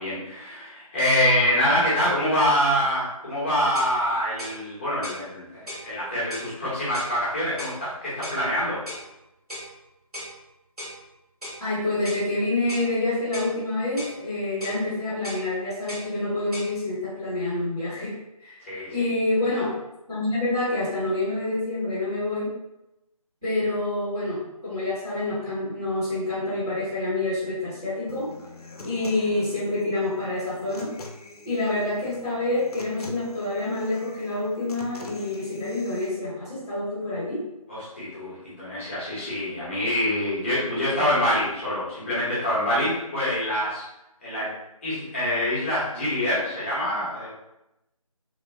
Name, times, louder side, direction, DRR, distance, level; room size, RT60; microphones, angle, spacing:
voice 1, 0.0-8.8 18.6-19.1 37.7-43.8 44.2-44.5 44.8-47.3, equal, 20° left, -9 dB, 0.8 m, -25 dB
sound 1, 3.3-3.4 3.7-4.0 4.4-4.6 5.0-5.2 5.7-5.9 6.3-6.5 6.9-7.2 7.6-7.8 8.2-8.4 8.9-9.1 9.5-9.7 10.1-10.3 10.8-11.0 11.4-11.6 12.0-12.3 12.7-12.9 13.3-13.5 14.0-14.2 14.6-14.8 15.2-15.4 15.9-16.1 16.5-16.7, left 1 dB, 80° right, 1.2 m, -37 dB
voice 2, 11.6-18.1 18.4-18.6 18.9-19.7 20.1-22.5 23.4-28.3 28.8-30.9 31.4-37.4, left 2 dB, 10° right, -17 dB, 0.6 m, -27 dB
Human voice / Acoustic guitar, 28.1-36.1, left 2 dB, 80° left, 0.5 m, -44 dB
2.9 x 2.4 x 2.5 m, 0.89 s
figure-of-eight pair, 160°, 19 cm